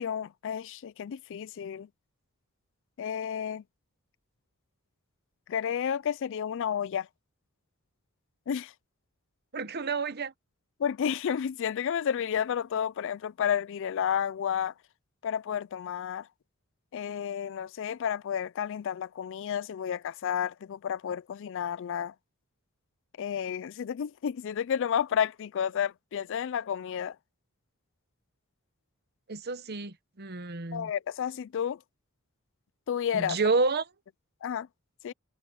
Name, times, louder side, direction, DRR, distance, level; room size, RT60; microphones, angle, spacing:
voice 1, 0.0-1.9 3.0-3.6 5.5-7.1 8.5-8.7 10.8-14.7 15.2-16.3 16.9-22.1 23.2-27.2 30.7-31.8 32.9-33.4 34.4-34.7 35.0-35.1, left 8 dB, 60° left, 0.4 m, -31 dB
voice 2, 9.5-10.3 29.3-30.9 33.1-33.8, right 4 dB, 50° right, 1.0 m, -29 dB
head